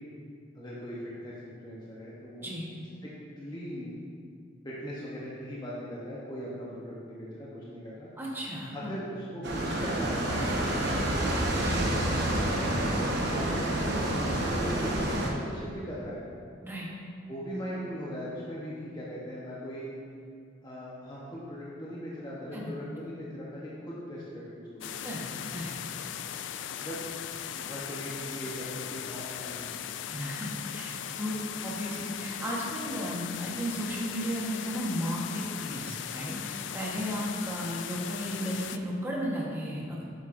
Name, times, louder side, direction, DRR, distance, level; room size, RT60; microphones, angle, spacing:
voice 1, 0.5-2.5 3.0-3.9 4.6-8.1 8.7-11.9 12.4-13.0 13.3-16.2 17.3-19.9 20.6-25.1 26.8-27.0 27.5-30.1, equal, 25° left, -7 dB, 0.9 m, -39 dB
voice 2, 8.2-8.9 12.8-12.9 16.6-16.9 22.5-22.7 25.0-25.7 30.1-40.0, equal, 10° right, -5 dB, 1.2 m, -34 dB
sound 1, 9.4-15.3, right 1 dB, 65° right, 1.0 m, -28 dB
sound 2, 24.8-38.8, left 9 dB, 75° left, 0.3 m, -38 dB
7.7 x 7.3 x 2.6 m, 2.4 s
head